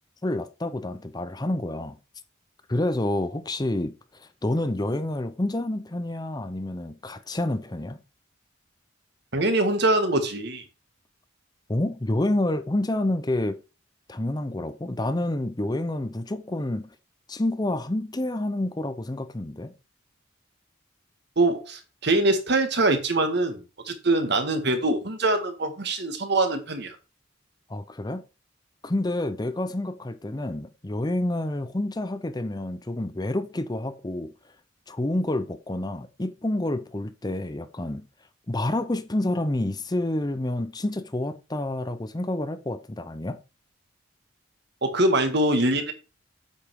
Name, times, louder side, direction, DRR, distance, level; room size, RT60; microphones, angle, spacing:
voice 1, 0.2-2.0 2.7-8.0 11.7-13.6 14.1-16.9 17.3-19.7 27.7-28.2 28.8-34.3 34.9-38.1 38.5-43.4, left 1 dB, 20° left, 0.6 m, -28 dB
voice 2, 9.3-10.6 21.4-27.0 44.8-45.9, right 2 dB, 55° right, 1.7 m, -23 dB
8.5 x 5.5 x 4.6 m
head